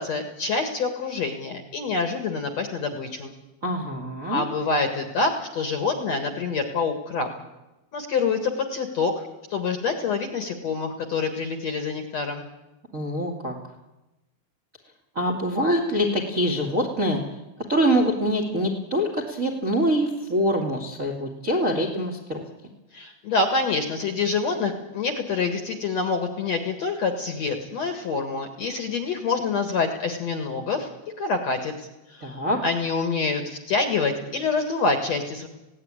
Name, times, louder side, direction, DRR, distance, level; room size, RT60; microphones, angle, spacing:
voice 1, 0.0-3.3 4.3-7.3 7.9-12.5 22.9-30.9 31.2-35.5, left 4 dB, 55° left, 6 dB, 2.2 m, -26 dB
voice 2, 3.6-4.4 12.9-13.6 15.1-17.2 17.7-22.4 32.2-32.6, equal, 35° right, 0 dB, 1.3 m, -24 dB
19.0 x 17.0 x 9.7 m, 1.0 s
omnidirectional pair, 5.0 m